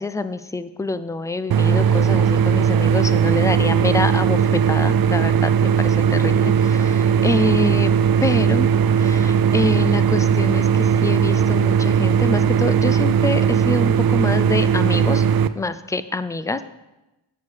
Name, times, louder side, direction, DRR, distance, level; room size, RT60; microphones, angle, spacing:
voice 1, 0.0-7.9 8.2-8.7 9.0-15.3 15.5-16.6, left 2 dB, 10° left, 13 dB, 0.3 m, -26 dB
sound 1, 1.5-15.5, right 7 dB, 60° right, 0.5 m, -18 dB
8.1 x 4.7 x 7.1 m, 1.0 s
cardioid pair, 90°, 42 cm